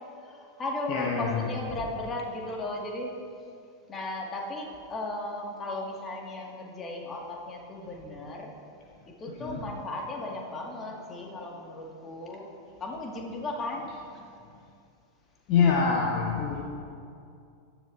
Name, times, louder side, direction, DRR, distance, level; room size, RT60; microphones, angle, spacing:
voice 1, 0.2-3.1 3.9-8.5 9.2-13.9, left 2 dB, 25° left, -1 dB, 2.2 m, -36 dB
voice 2, 0.9-1.8 9.3-9.6 15.5-16.6, left 5 dB, 40° left, -2 dB, 1.4 m, -26 dB
17.0 x 13.5 x 2.8 m, 2.4 s
figure-of-eight pair, 90°, 0 cm